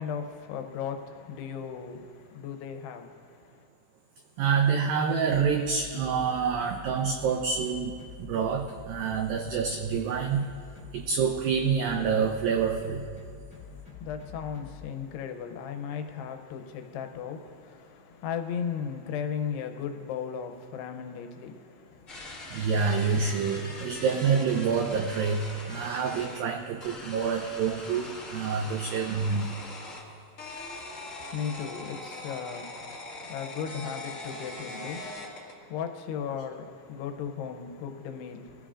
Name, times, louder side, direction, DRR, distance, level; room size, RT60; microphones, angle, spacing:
voice 1, 0.0-3.7 13.5-22.7 30.9-38.7, left 7 dB, 80° left, 2.8 m, -37 dB
voice 2, 4.4-10.5 10.9-13.1 22.5-29.5, right 6 dB, 85° right, 2.0 m, -27 dB
sound 1, 5.2-14.9, left 5 dB, 5° left, 2.2 m, -46 dB
sound 2, 22.1-26.4 26.8-30.0 30.4-35.6, left 2 dB, 60° left, 0.8 m, -41 dB
22.0 x 15.0 x 2.5 m
omnidirectional pair, 4.9 m